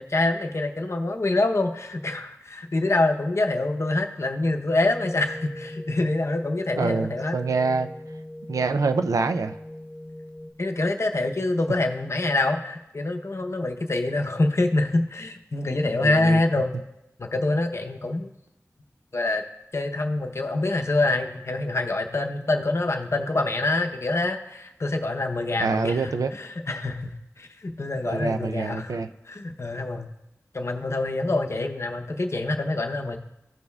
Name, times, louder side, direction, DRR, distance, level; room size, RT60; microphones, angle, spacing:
voice 1, 0.0-7.4 10.6-16.8 17.2-18.3 19.1-19.4 19.7-29.0 29.3-30.1 30.5-33.2, left 2 dB, 55° left, 4 dB, 0.7 m, -26 dB
sound 1, 4.8-10.5, left 1 dB, 25° left, 1.0 m, -39 dB
voice 2, 6.8-7.9 8.5-9.6 16.0-16.4 25.6-26.3 28.1-29.1, right 4 dB, 90° right, 9 dB, 0.4 m, -25 dB
15.0 x 5.3 x 2.3 m, 0.88 s
wide cardioid pair, 55°, 6 cm